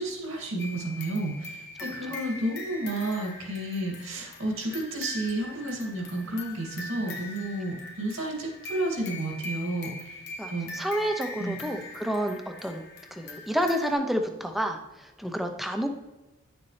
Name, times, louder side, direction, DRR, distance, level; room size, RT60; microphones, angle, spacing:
voice 1, 0.0-10.2 10.5-10.7 11.4-11.6, right 1 dB, 70° right, 0 dB, 2.4 m, -31 dB
sound 1, 0.6-13.9, left 2 dB, 50° left, 1.3 m, -42 dB
voice 2, 10.4-12.8 13.1-15.9, equal, ahead, 4 dB, 0.7 m, -29 dB
10.5 x 6.9 x 3.3 m, 1.1 s
head